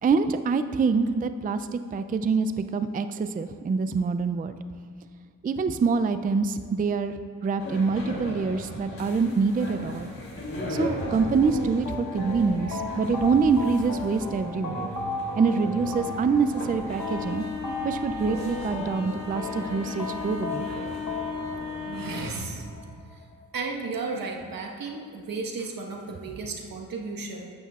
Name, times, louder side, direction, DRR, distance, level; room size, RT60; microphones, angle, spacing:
voice 1, 0.0-4.6 5.4-10.1 10.7-14.9 15.4-17.4 17.8-20.7, right 4 dB, 25° right, 10 dB, 0.3 m, -25 dB
sound 1, 7.6-22.3, left 2 dB, 40° left, 3.0 m, -36 dB
sound 2, 11.0-24.0, left 2 dB, 70° left, 1.2 m, -36 dB
voice 2, 21.5-22.6 23.1-23.2 23.5-27.5, right 4 dB, 80° right, 1 dB, 1.4 m, -34 dB
14.5 x 11.5 x 2.4 m, 2.1 s
wide cardioid pair, 100°, 34 cm